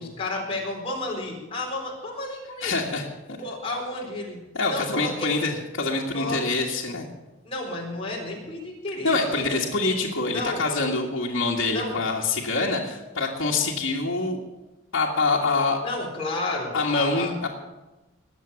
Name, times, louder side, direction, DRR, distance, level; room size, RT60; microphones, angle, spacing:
voice 1, 0.0-2.8 3.4-4.4 4.7-5.3 6.1-6.4 7.4-10.6 11.7-12.0 15.8-17.3, left 2 dB, 30° left, -2 dB, 4.1 m, -32 dB
voice 2, 2.6-3.4 4.5-7.1 9.0-14.4 14.9-15.8 16.7-17.5, left 3 dB, 80° left, -5 dB, 1.8 m, -25 dB
20.0 x 7.6 x 7.1 m, 1.1 s
head